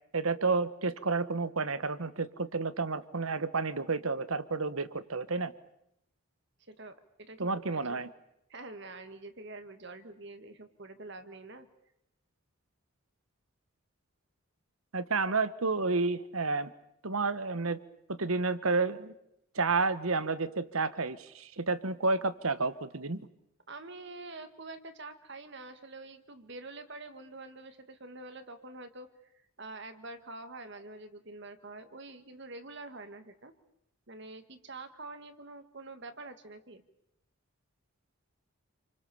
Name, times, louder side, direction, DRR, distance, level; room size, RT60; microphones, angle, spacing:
voice 1, 0.1-5.5 7.4-8.1 14.9-16.7 17.0-17.8 18.2-19.1 19.5-23.2, right 3 dB, 75° right, 15 dB, 1.3 m, -30 dB
voice 2, 6.7-8.0 8.5-11.7 23.7-29.1 29.6-33.5 34.1-36.8, right 2 dB, 55° right, 8 dB, 1.8 m, -46 dB
28.5 x 25.0 x 7.1 m, 0.81 s
head